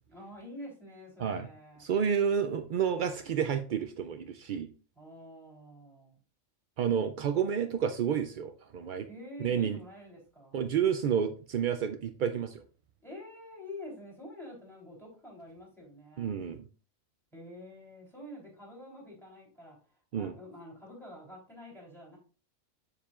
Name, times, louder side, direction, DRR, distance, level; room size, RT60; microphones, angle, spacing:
voice 1, 0.1-1.8 4.9-6.2 9.1-10.7 13.0-16.3 17.3-19.8 20.2-22.2, left 1 dB, ahead, -4 dB, 3.5 m, -47 dB
voice 2, 1.8-4.7 6.8-9.1 9.4-9.8 10.5-12.6 16.2-16.6 20.1-20.3, right 8 dB, 75° right, 8 dB, 0.4 m, -30 dB
7.3 x 6.8 x 2.4 m, 0.37 s
omnidirectional pair, 1.4 m